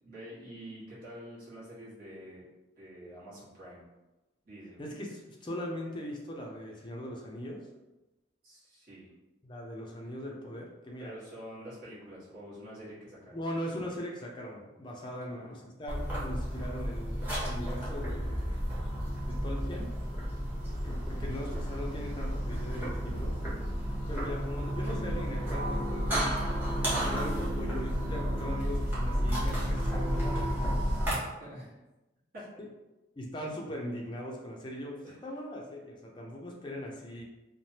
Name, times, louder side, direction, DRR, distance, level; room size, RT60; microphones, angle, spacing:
voice 1, 0.0-2.5 2.8-3.8 4.4-4.8 8.4-9.1 11.0-13.4 15.3-15.5 31.4-31.8 32.3-32.4 35.0-35.1, equal, 45° right, -9 dB, 1.2 m, -47 dB
voice 2, 4.8-7.7 9.4-11.1 13.3-18.7 19.3-19.9 20.8-23.4 24.1-26.3 26.8-30.9 32.6-32.7 33.2-37.2, equal, 25° left, -1 dB, 0.4 m, -40 dB
sound 1, 15.9-31.1, equal, 10° right, 0.9 m, -32 dB
3.2 x 2.1 x 2.7 m, 1.0 s
head